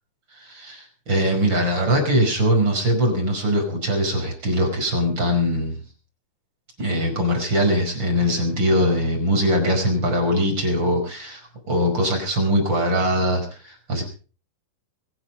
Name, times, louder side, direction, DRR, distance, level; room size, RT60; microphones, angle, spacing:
voice 1, 0.4-5.8 6.8-11.4 11.7-14.0, equal, 25° right, 2 dB, 5.7 m, -21 dB
23.0 x 11.5 x 5.3 m, 0.40 s
omnidirectional pair, 5.0 m